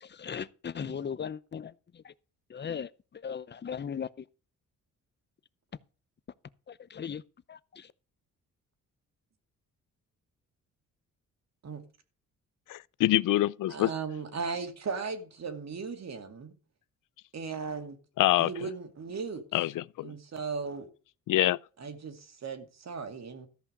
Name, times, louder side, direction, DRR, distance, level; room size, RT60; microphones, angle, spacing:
voice 1, 0.0-1.7 2.0-2.1 2.5-2.9 3.2-4.1 6.9-7.2 7.5-7.9, left 7 dB, 35° left, 0.7 m, -37 dB
voice 2, 12.7-13.9 18.2-18.5 19.5-20.1 21.3-21.6, left 15 dB, 75° left, 0.5 m, -25 dB
voice 3, 13.7-16.5 17.3-18.0 18.4-19.4 20.0-20.9 21.8-23.5, right 5 dB, 55° right, 2.4 m, -37 dB
13.5 x 5.7 x 6.6 m
cardioid pair, 85°, 32 cm